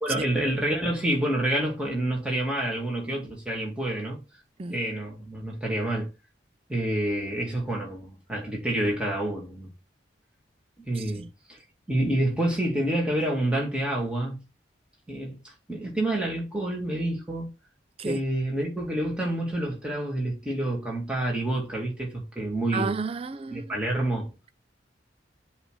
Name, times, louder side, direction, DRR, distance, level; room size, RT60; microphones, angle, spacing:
voice 1, 0.0-4.2 4.7-6.1 6.7-9.7 10.8-11.6 11.9-14.4 15.1-15.4 15.7-17.5 18.0-22.9 23.5-24.3, right 1 dB, 5° right, 2.4 m, -28 dB
voice 2, 10.9-11.3 18.0-18.2 22.7-23.8, right 4 dB, 30° right, 0.4 m, -33 dB
7.8 x 3.3 x 6.1 m
head